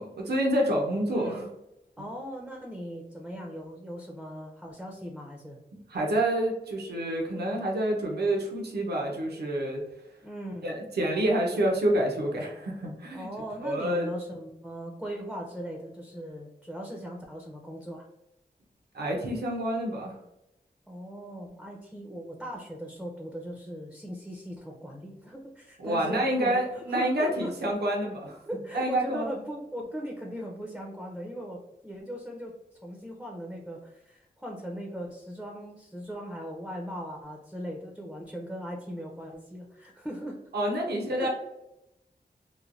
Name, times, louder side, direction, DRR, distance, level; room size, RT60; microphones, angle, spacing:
voice 1, 0.0-1.4 5.9-9.8 10.6-13.3 13.6-14.1 18.9-20.2 25.8-28.4 28.7-29.3 40.5-41.3, right 1 dB, 80° right, -1 dB, 0.7 m, -28 dB
voice 2, 1.1-1.4 2.0-5.6 10.2-10.7 13.1-18.1 20.9-27.7 28.5-32.5 32.8-40.4 41.1-41.3, equal, 5° right, 0 dB, 0.5 m, -39 dB
3.1 x 2.1 x 2.4 m, 0.89 s
wide cardioid pair, 80°, 17 cm